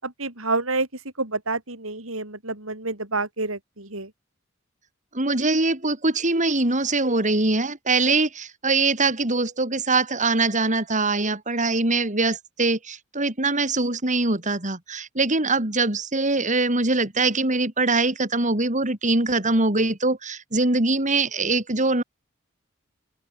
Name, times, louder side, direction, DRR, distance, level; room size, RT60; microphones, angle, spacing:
voice 1, 0.0-0.9 1.2-4.1, right 3 dB, 70° right, 6.9 m, -28 dB
voice 2, 5.1-22.0, right 3 dB, 35° right, 5.2 m, -23 dB
open air
head